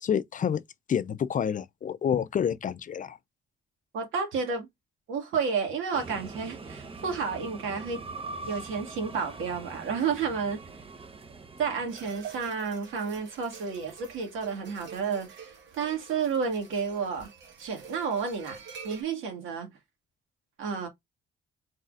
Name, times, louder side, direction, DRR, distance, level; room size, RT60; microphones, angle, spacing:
voice 1, 0.0-0.6 0.9-3.2, left 8 dB, 40° left, 0.4 m, -28 dB
voice 2, 3.9-4.7 5.1-8.0 8.5-10.6 11.6-17.3 17.6-19.7 20.6-20.9, right 5 dB, 85° right, 2.0 m, -31 dB
sound 1, 5.9-12.6, right 3 dB, 30° right, 0.9 m, -43 dB
sound 2, 11.9-19.0, right 7 dB, 65° right, 1.6 m, -47 dB
4.1 x 4.0 x 2.4 m
cardioid pair, 90°, 20 cm